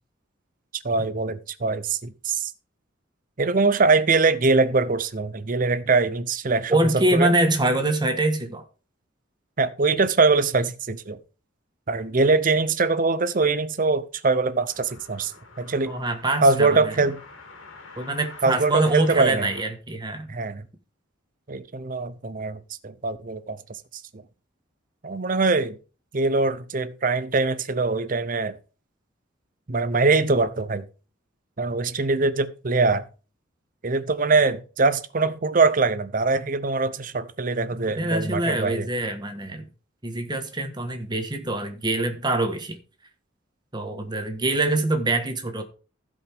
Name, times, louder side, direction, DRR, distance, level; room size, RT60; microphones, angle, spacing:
voice 1, 0.8-2.5 3.4-7.3 9.6-11.2 11.9-15.3 15.6-15.9 16.4-17.2 18.4-19.5 20.3-20.6 21.5-23.6 25.0-25.8 26.1-28.6 29.7-30.8 31.6-33.1 33.8-38.9, right 3 dB, 40° right, 0.7 m, -23 dB
voice 2, 6.7-8.6 15.9-17.1 18.0-20.3 37.9-39.7 40.0-42.8 43.7-45.6, right 2 dB, 20° right, 1.4 m, -24 dB
sound 1, 14.7-19.6, left 3 dB, 85° left, 2.7 m, -46 dB
15.5 x 5.3 x 3.5 m
head